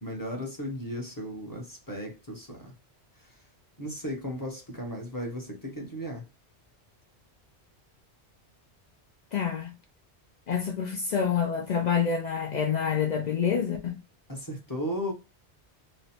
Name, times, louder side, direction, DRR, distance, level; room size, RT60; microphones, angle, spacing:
voice 1, 0.0-2.7 3.3-3.4 3.8-6.2 14.3-15.1, equal, 20° left, 0.7 m, -35 dB
voice 2, 9.3-9.8 10.5-14.0, left 7 dB, 60° left, 0.4 m, -27 dB
3.1 x 2.0 x 2.8 m
omnidirectional pair, 1.2 m